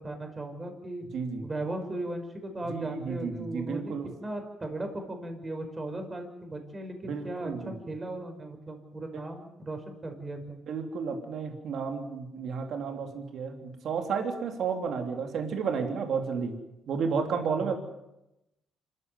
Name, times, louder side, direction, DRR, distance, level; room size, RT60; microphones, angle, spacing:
voice 1, 0.0-1.0 1.4-10.6 17.6-17.7, right 1 dB, 25° right, 5 dB, 5.4 m, -37 dB
voice 2, 1.1-1.5 2.7-4.1 7.0-7.8 10.7-16.6 16.9-17.7, right 5 dB, 70° right, 4 dB, 3.3 m, -32 dB
26.5 x 14.5 x 9.4 m, 0.91 s
cardioid pair, 90°, 0 cm